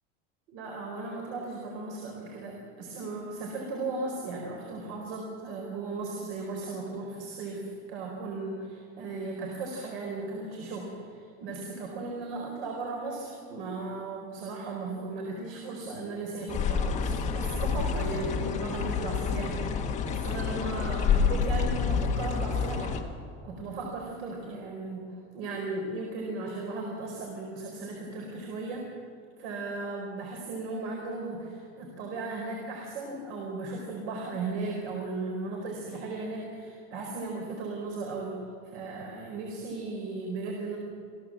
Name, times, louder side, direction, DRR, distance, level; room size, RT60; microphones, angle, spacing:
voice 1, 0.5-19.7 20.1-23.0 23.4-25.0 25.3-28.9 29.4-38.4 38.6-40.8, right 3 dB, 80° right, 0 dB, 4.6 m, -36 dB
sound 1, 16.5-23.0, left 6 dB, 20° left, 1.6 m, -28 dB
26.5 x 16.0 x 7.6 m, 2.5 s
cardioid pair, 170°, 33 cm